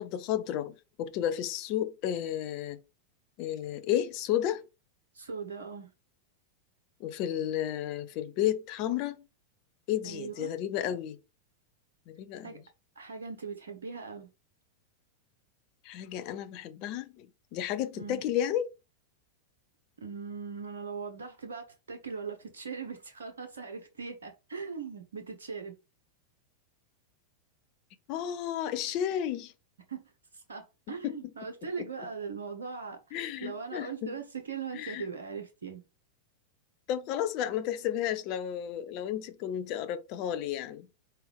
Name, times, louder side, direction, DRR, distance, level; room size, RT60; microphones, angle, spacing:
voice 1, 0.0-2.8 3.4-4.6 7.0-9.2 9.9-11.2 12.1-12.6 15.8-18.7 28.1-29.5 31.0-31.2 31.8-31.9 33.1-34.1 34.7-35.1 36.9-40.9, left 11 dB, 40° left, 0.6 m, -32 dB
voice 2, 5.1-5.9 10.0-10.5 12.4-12.6 13.0-14.3 17.9-18.2 20.0-25.8 29.9-35.8, right 5 dB, 65° right, 0.8 m, -40 dB
4.4 x 3.5 x 3.5 m
figure-of-eight pair, 90°, 0 cm